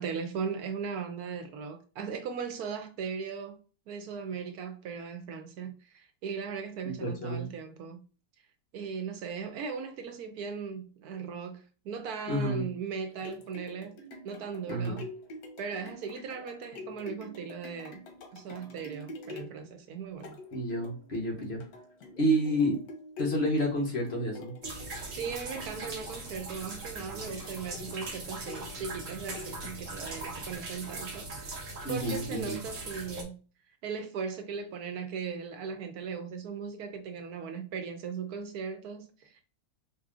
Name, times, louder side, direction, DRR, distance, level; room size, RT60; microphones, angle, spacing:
voice 1, 0.0-3.6 3.9-8.0 8.7-14.0 14.2-15.0 15.6-18.0 18.3-20.4 25.0-33.4 33.8-39.5, right 6 dB, 90° right, 1.2 m, -38 dB
voice 2, 7.0-7.5 12.3-12.7 14.7-15.0 20.5-21.6 22.2-22.8 23.2-24.5 31.8-32.6, equal, 45° left, 1.3 m, -29 dB
sound 1, 12.9-30.1 30.6-30.7, left 2 dB, 85° left, 1.3 m, -47 dB
sound 2, 24.6-33.2, right 2 dB, 60° right, 1.4 m, -40 dB
4.0 x 3.1 x 2.4 m
omnidirectional pair, 1.6 m